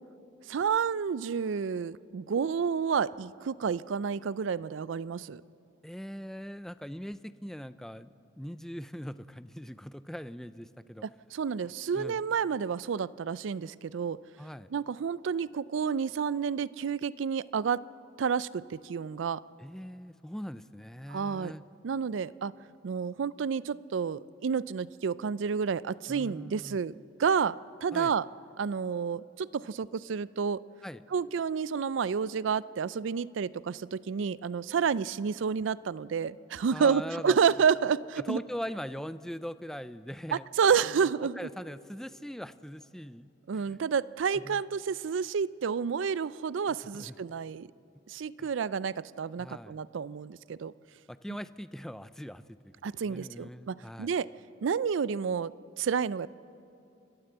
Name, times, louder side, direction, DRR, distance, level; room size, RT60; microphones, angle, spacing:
voice 1, 0.5-5.4 11.3-14.2 14.7-17.8 18.2-19.4 21.1-21.5 21.8-22.5 22.8-27.6 27.8-28.3 28.6-30.6 31.1-38.4 40.3-41.4 43.5-47.7 48.1-50.7 52.8-54.3 54.6-56.3, right 6 dB, 75° right, 19 dB, 0.4 m, -30 dB
voice 2, 5.8-11.0 11.9-12.2 14.4-14.7 19.6-21.6 26.1-26.8 27.9-28.1 30.8-31.0 36.7-37.4 38.2-40.5 40.8-41.1 41.4-43.8 44.3-44.6 46.7-47.1 48.4-48.5 49.4-49.8 51.1-52.7 53.0-54.1, equal, ahead, 14 dB, 0.4 m, -41 dB
29.0 x 12.5 x 7.9 m, 2.6 s
head